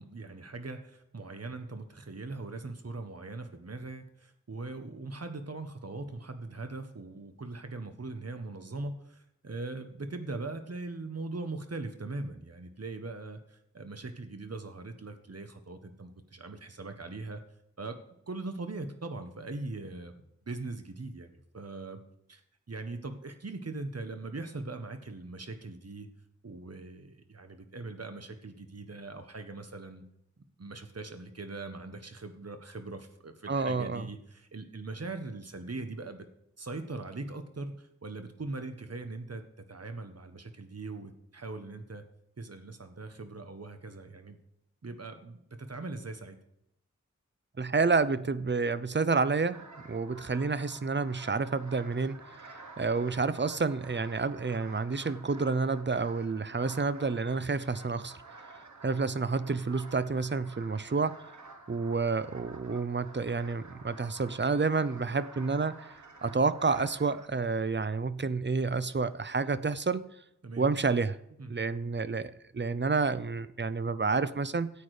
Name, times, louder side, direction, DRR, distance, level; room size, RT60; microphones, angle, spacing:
voice 1, 0.0-17.4 17.8-18.0 18.3-22.0 22.3-22.4 22.7-26.1 26.4-30.0 30.4-36.3 36.6-42.0 42.4-44.4 44.8-46.4 70.4-70.7 71.4-71.5, right 3 dB, 55° right, 7 dB, 1.5 m, -41 dB
voice 2, 33.5-34.1 47.6-49.6 49.9-58.2 58.8-61.2 61.7-65.9 66.2-70.0 70.6-71.2 71.5-74.7, right 4 dB, 40° right, 15 dB, 0.7 m, -29 dB
sound 1, 49.5-67.3, right 3 dB, 85° right, 1.6 m, -51 dB
13.5 x 8.6 x 5.0 m, 0.80 s
wide cardioid pair, 50°, 29 cm